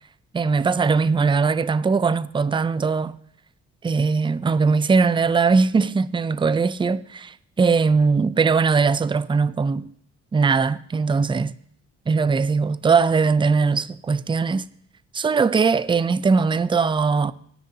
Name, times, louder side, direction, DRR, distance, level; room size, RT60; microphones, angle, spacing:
voice 1, 0.3-3.1 3.8-9.9 10.3-11.5 12.1-14.7 15.1-17.3, right 4 dB, 15° right, 0.5 m, -20 dB
20.0 x 10.0 x 2.8 m
cardioid pair, 90°, 30 cm